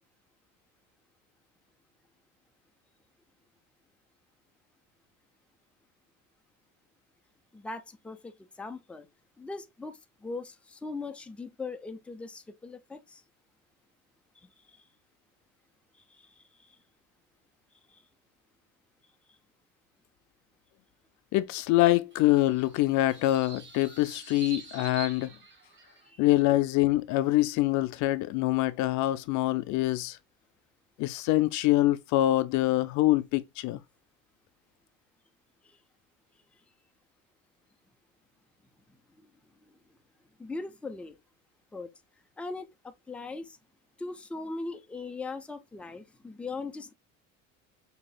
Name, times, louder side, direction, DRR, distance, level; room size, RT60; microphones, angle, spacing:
voice 1, 7.5-9.1 9.4-13.2 14.4-14.8 16.1-16.8 17.9-18.0 26.0-26.2 35.6-35.8 40.4-41.2 41.7-41.9 42.4-42.7 43.1-43.6 44.0-46.9, left 3 dB, 5° left, 0.5 m, -40 dB
voice 2, 21.3-25.3 26.2-30.2 31.0-33.8, left 16 dB, 60° left, 0.4 m, -25 dB
sound 1, 22.1-26.1, right 6 dB, 35° right, 1.3 m, -46 dB
6.0 x 2.8 x 2.2 m
supercardioid pair, 110°, 34 cm